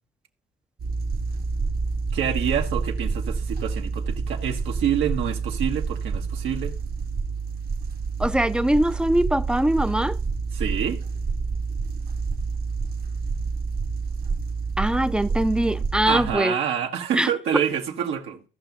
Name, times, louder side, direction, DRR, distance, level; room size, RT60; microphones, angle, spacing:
sound 1, 0.8-16.3, right 4 dB, 50° right, 0.9 m, -28 dB
voice 1, 2.1-6.7 10.5-11.0 16.1-18.4, right 8 dB, 90° right, 1.4 m, -27 dB
voice 2, 8.2-10.2 14.8-16.6 17.1-17.3, right 1 dB, 5° right, 0.4 m, -22 dB
16.5 x 5.9 x 2.6 m
cardioid pair, 90°, 20 cm